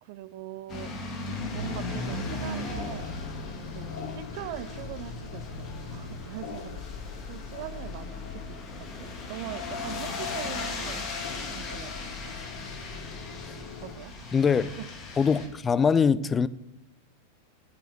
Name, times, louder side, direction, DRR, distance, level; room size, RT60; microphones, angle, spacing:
voice 1, 0.0-1.0 1.5-3.2 3.7-11.1 11.5-12.0 13.8-14.9 15.3-15.4, right 15 dB, 50° right, 0.5 m, -42 dB
sound 1, 0.7-15.5, left 2 dB, 35° left, 2.3 m, -38 dB
sound 2, 1.6-13.9, left 5 dB, 55° left, 1.6 m, -40 dB
voice 2, 14.3-14.7 15.2-16.5, left 6 dB, 20° left, 0.4 m, -22 dB
10.5 x 7.7 x 6.5 m
figure-of-eight pair, 90°, 0 cm